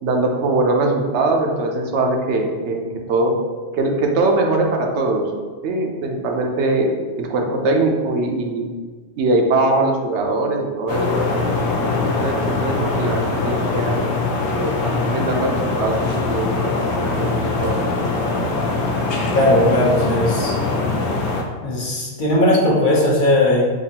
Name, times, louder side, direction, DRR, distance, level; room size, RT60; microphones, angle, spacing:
voice 1, 0.0-2.8 3.1-3.3 3.7-5.3 5.6-8.6 9.2-11.5 12.0-14.0 14.5-17.9, right 2 dB, 80° right, 1 dB, 0.9 m, -21 dB
sound 1, 10.9-21.4, left 3 dB, 80° left, 0.9 m, -22 dB
voice 2, 19.3-20.5 21.6-23.7, left 1 dB, 50° left, -4 dB, 0.8 m, -17 dB
5.1 x 2.4 x 2.8 m, 1.4 s
omnidirectional pair, 1.2 m